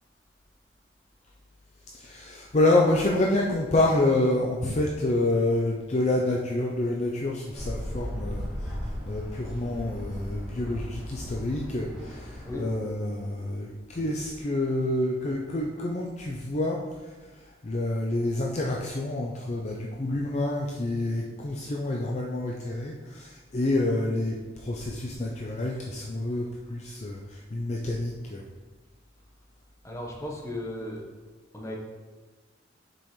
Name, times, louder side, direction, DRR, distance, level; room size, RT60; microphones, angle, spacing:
voice 1, 1.9-8.7 9.1-16.8 17.6-28.4, left 2 dB, 35° left, -2 dB, 0.5 m, -28 dB
sound 1, 7.5-12.5, equal, 5° right, 1.5 m, -36 dB
voice 2, 29.8-31.0 31.5-31.8, left 1 dB, 15° left, -2 dB, 1.0 m, -35 dB
7.1 x 5.4 x 3.1 m, 1.3 s
head